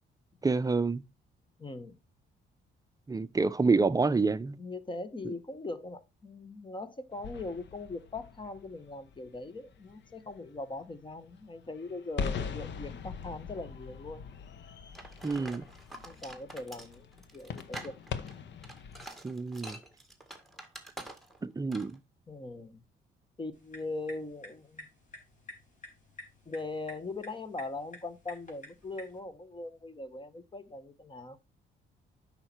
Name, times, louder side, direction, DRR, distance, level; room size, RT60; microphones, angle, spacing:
voice 1, 0.4-1.0 3.1-4.6 15.2-15.6 19.2-19.8 21.4-22.0, right 4 dB, 20° right, 0.6 m, -28 dB
voice 2, 1.6-2.0 3.7-4.0 4.6-14.2 15.3-15.6 16.0-17.1 17.3-18.0 22.3-22.8 23.4-24.8 26.4-31.4, left 2 dB, 25° left, 1.3 m, -41 dB
sound 1, 7.1-19.0, left 6 dB, 65° left, 1.0 m, -42 dB
sound 2, 14.9-21.4 21.7-22.0, right 1 dB, ahead, 1.9 m, -46 dB
sound 3, 23.5-29.2, equal, 40° left, 4.6 m, -51 dB
8.9 x 5.8 x 4.4 m
cardioid pair, 90°, 20 cm